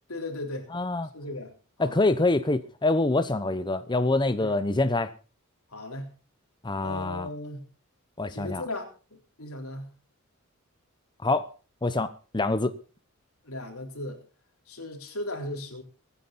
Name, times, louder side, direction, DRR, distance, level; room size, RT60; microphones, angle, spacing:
voice 1, 0.1-0.7 1.1-2.0 4.4-4.5 5.7-6.1 6.8-7.6 8.3-9.9 13.4-14.2 14.7-15.8, left 2 dB, 90° left, 3.9 m, -37 dB
voice 2, 0.7-1.1 1.8-5.1 6.6-7.3 8.2-8.6 11.2-11.5 11.8-12.7, left 2 dB, 20° left, 0.8 m, -25 dB
23.0 x 10.0 x 4.1 m
head